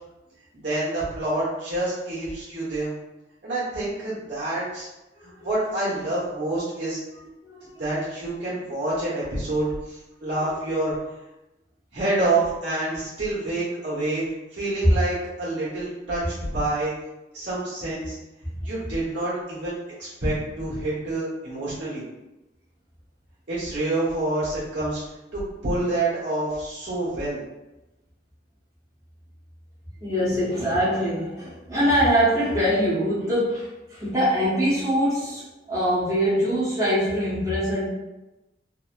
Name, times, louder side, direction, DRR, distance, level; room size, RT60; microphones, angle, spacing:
voice 1, 0.6-2.9 3.4-4.9 5.2-7.0 7.8-10.9 11.9-14.2 14.5-16.9 17.3-18.2 18.6-22.0 23.5-25.0 25.3-27.4, right 2 dB, 70° right, -8 dB, 1.2 m, -27 dB
voice 2, 5.1-5.5 7.1-7.7 10.2-10.5 14.8-14.9 18.5-18.7 30.0-35.4 35.7-37.8, equal, 15° right, -11 dB, 0.8 m, -23 dB
2.8 x 2.1 x 2.5 m, 0.98 s
head